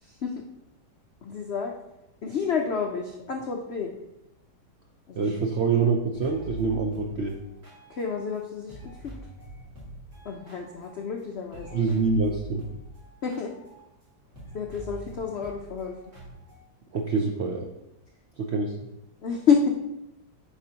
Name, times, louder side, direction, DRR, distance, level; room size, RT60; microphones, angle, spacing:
voice 1, 0.0-0.3 1.2-1.7 2.2-3.9 5.1-5.2 7.9-9.1 10.2-11.8 13.2-13.5 14.5-16.0 19.2-19.7, left 6 dB, 70° left, 2 dB, 0.6 m, -29 dB
voice 2, 5.1-7.4 11.7-12.6 16.9-17.7 18.4-18.8, right 4 dB, 70° right, 0 dB, 0.6 m, -25 dB
sound 1, 6.1-8.4 8.7-11.2 11.5-16.7, right 1 dB, 45° right, 2.6 m, -45 dB
9.9 x 5.1 x 2.8 m, 0.89 s
omnidirectional pair, 1.9 m